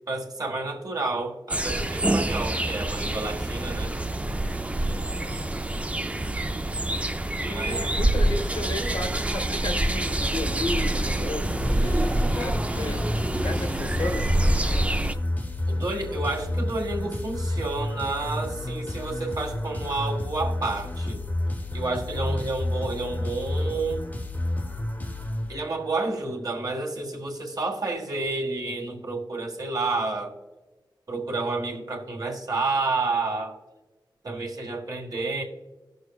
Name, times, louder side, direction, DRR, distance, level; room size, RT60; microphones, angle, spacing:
voice 1, 0.0-3.9 7.4-7.9 15.7-21.2 21.7-24.1 25.5-30.3 31.1-33.6 34.2-35.4, right 3 dB, 55° right, 1 dB, 1.7 m, -30 dB
sound 1, 1.5-15.1, right 1 dB, 15° right, 0.4 m, -26 dB
voice 2, 4.9-5.4 7.4-13.0 13.4-14.3, left 2 dB, 70° left, 5 dB, 1.1 m, -34 dB
sound 2, 11.4-26.0, left 1 dB, 20° left, 0.9 m, -31 dB
18.5 x 6.4 x 2.3 m, 1.2 s
wide cardioid pair, 100°, 8 cm